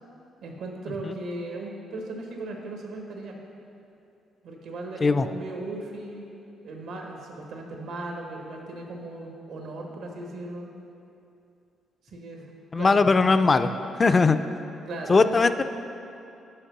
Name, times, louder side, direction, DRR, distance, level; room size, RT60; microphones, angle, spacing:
voice 1, 0.4-3.4 4.4-6.3 6.6-10.7 12.0-12.5 12.7-13.1 14.8-15.2, right 2 dB, 80° right, 1 dB, 1.2 m, -37 dB
voice 2, 12.7-13.7 14.0-14.4 15.1-15.6, left 4 dB, 30° left, 10 dB, 0.3 m, -19 dB
6.4 x 5.2 x 6.0 m, 2.7 s
cardioid pair, 90°, 0 cm